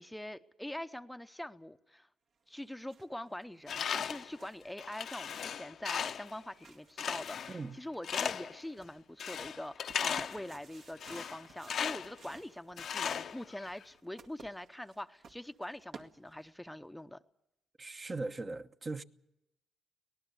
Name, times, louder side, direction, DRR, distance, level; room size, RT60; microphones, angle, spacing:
voice 1, 0.0-2.1 2.5-17.2, left 1 dB, 5° left, 0.8 m, -44 dB
sound 1, 2.5-16.7, right 5 dB, 65° right, 2.0 m, -59 dB
Tools, 3.7-4.3 4.8-6.3 7.0-7.7 8.0-8.6 9.2-10.5 11.0-12.2 12.8-13.8, left 8 dB, 60° left, 0.8 m, -37 dB
voice 2, 17.8-19.0, right 3 dB, 30° right, 1.0 m, -39 dB
24.0 x 18.5 x 6.9 m
cardioid pair, 90°, 0 cm